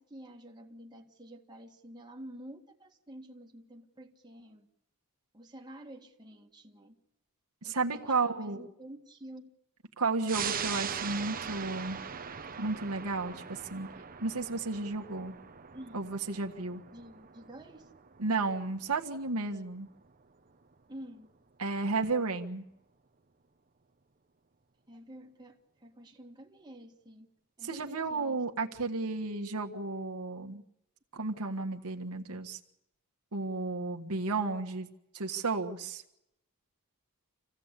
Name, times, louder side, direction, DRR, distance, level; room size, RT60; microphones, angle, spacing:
voice 1, 0.0-4.7 5.3-7.0 7.6-9.5 15.7-16.0 16.9-17.9 20.9-21.3 24.9-27.3 27.6-28.7, right 1 dB, 20° right, 1 dB, 1.9 m, -49 dB
voice 2, 7.6-8.6 10.0-12.0 12.6-13.9 14.2-15.4 15.9-16.8 18.2-19.9 21.6-22.6 27.6-30.6 31.1-32.6 33.3-34.9 35.1-36.0, right 3 dB, 80° right, 3 dB, 1.6 m, -33 dB
sound 1, 10.3-21.2 21.6-21.7, right 7 dB, 40° right, 1.1 m, -41 dB
27.0 x 16.0 x 8.3 m, 0.84 s
head